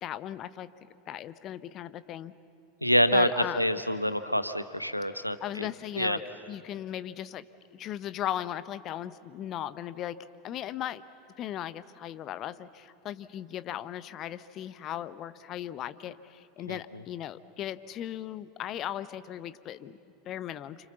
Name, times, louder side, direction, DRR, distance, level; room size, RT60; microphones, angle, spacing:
voice 1, 0.0-0.7 1.1-2.3 3.1-3.6 5.4-6.2 6.5-7.4 7.7-10.1 10.4-11.0 11.4-20.0 20.2-20.8, left 11 dB, 35° left, 14 dB, 0.9 m, -37 dB
voice 2, 2.8-5.7 6.0-6.2 16.7-16.8, equal, 90° left, 10 dB, 1.0 m, -26 dB
29.0 x 26.5 x 7.1 m, 2.6 s
figure-of-eight pair, 80°, 0 cm